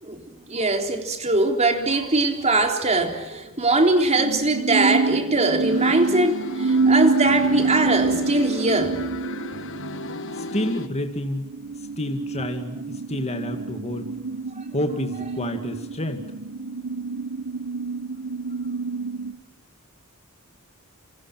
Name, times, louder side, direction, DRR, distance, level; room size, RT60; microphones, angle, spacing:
voice 1, 0.0-9.0 14.6-14.7, right 2 dB, 30° right, 3.7 m, -22 dB
sound 1, 4.2-19.3, right 4 dB, 60° right, 1.3 m, -27 dB
sound 2, 5.7-10.9, left 2 dB, 60° left, 1.4 m, -35 dB
voice 2, 10.4-11.5 12.0-14.1 14.7-16.2, left 1 dB, 30° left, 2.1 m, -29 dB
28.5 x 26.0 x 6.1 m
head